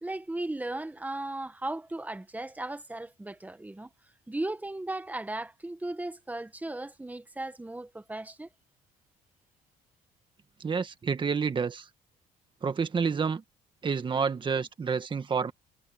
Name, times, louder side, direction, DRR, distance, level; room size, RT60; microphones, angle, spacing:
voice 1, 0.0-3.9 4.3-8.5, right 2 dB, 10° right, 1.5 m, -36 dB
voice 2, 10.6-11.9 12.6-13.4 13.8-15.5, right 5 dB, 30° right, 1.5 m, -29 dB
cardioid pair, 110°, 17 cm